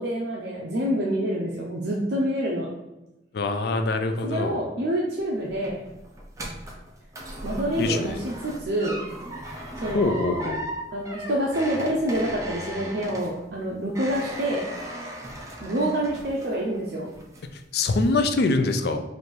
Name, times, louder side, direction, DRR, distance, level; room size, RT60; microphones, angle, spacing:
voice 1, 0.0-2.7 4.2-5.8 7.4-8.9 9.8-10.4 10.9-14.6 15.6-17.1, right 1 dB, 65° right, -3 dB, 0.6 m, -27 dB
voice 2, 3.3-4.6 7.8-8.2 9.9-10.6 17.5-19.0, left 3 dB, 60° left, 7 dB, 0.4 m, -24 dB
sound 1, 5.2-16.8 17.1-17.6 18.0-18.1, right 1 dB, 20° right, 0.6 m, -37 dB
3.2 x 2.6 x 4.3 m, 0.98 s
head